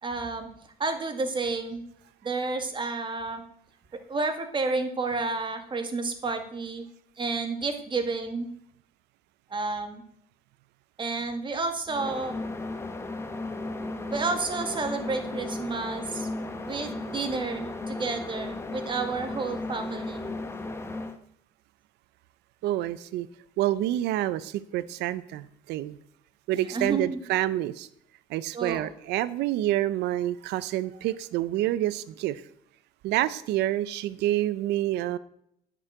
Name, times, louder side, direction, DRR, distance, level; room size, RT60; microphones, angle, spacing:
voice 1, 0.0-0.5 0.8-1.8 2.2-3.4 4.1-6.8 7.2-8.5 9.5-10.0 11.0-12.4 14.1-16.3 16.7-20.2 26.6-27.2 28.5-28.9, right 3 dB, 30° right, 6 dB, 2.0 m, -30 dB
sound 1, 11.9-21.2, left 2 dB, 15° left, 1.3 m, -35 dB
voice 2, 22.6-23.3 23.6-26.0 26.5-27.9 28.3-32.4 33.0-35.2, right 14 dB, 85° right, 16 dB, 0.6 m, -28 dB
10.0 x 6.3 x 7.9 m, 0.70 s
cardioid pair, 110°, 17 cm